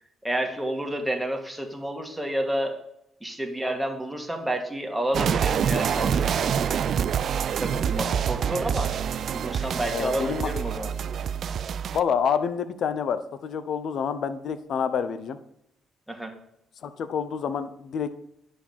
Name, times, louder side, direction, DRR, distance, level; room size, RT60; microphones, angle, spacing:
voice 1, 0.2-2.8 3.2-6.8 7.6-8.9 9.3-10.9 16.1-16.3, right 1 dB, 5° right, 3 dB, 2.1 m, -30 dB
sound 1, 5.1-12.0, right 8 dB, 60° right, 0.4 m, -26 dB
voice 2, 9.9-10.5 11.9-15.4 16.8-18.2, left 7 dB, 65° left, 12 dB, 0.8 m, -28 dB
10.0 x 5.1 x 7.3 m, 0.78 s
cardioid pair, 90°, 0 cm